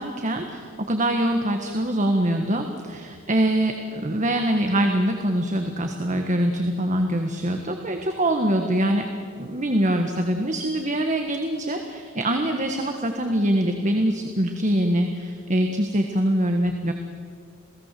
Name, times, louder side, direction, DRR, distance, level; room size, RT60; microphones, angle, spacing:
voice 1, 0.0-9.1 9.4-16.9, right 1 dB, 35° right, 4 dB, 1.5 m, -24 dB
28.0 x 18.5 x 7.6 m, 2.3 s
head